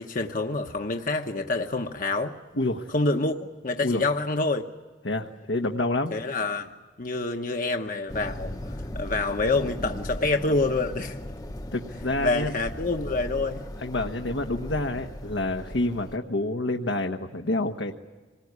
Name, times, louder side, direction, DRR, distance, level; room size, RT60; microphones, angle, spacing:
voice 1, 0.0-2.4 2.9-4.6 6.1-11.2 12.2-13.6, left 3 dB, 50° left, 4 dB, 1.0 m, -27 dB
voice 2, 2.6-2.9 3.8-4.0 5.0-6.1 11.7-12.5 13.8-17.9, left 2 dB, 80° left, 3 dB, 1.3 m, -28 dB
sound 1, 8.1-16.2, left 1 dB, 20° left, 0.9 m, -37 dB
26.0 x 19.5 x 9.7 m, 1.4 s
head